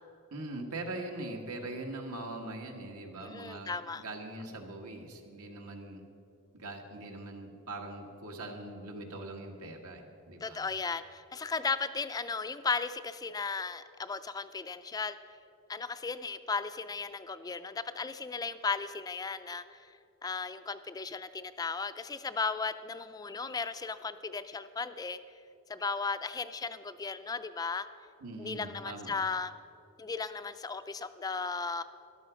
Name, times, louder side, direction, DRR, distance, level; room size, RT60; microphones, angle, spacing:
voice 1, 0.3-6.0 6.5-10.7 28.2-29.1, right 2 dB, 85° right, 2 dB, 1.7 m, -42 dB
voice 2, 3.2-4.0 10.4-15.2 15.7-20.0 20.2-25.2 25.7-27.9 28.4-29.5 30.0-31.8, left 4 dB, 15° left, 11 dB, 0.3 m, -36 dB
13.5 x 11.5 x 5.1 m, 2.6 s
head